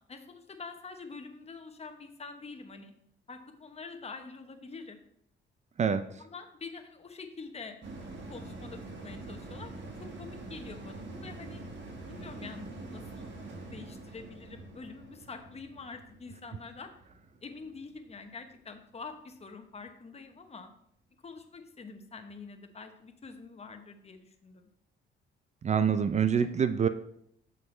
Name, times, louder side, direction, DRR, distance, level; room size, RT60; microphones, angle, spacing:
voice 1, 0.1-2.9 3.3-5.0 6.2-7.8 8.3-9.7 10.0-11.6 12.1-13.3 13.6-16.9 17.4-20.7 21.2-24.7, left 4 dB, 30° left, 7 dB, 1.0 m, -46 dB
voice 2, 5.8-6.2 25.6-26.9, right 7 dB, 35° right, 11 dB, 0.4 m, -26 dB
sound 1, 7.8-18.5 18.9-19.0, right 2 dB, 65° right, 1.5 m, -45 dB
8.3 x 6.6 x 3.3 m, 0.72 s
cardioid pair, 90°, 20 cm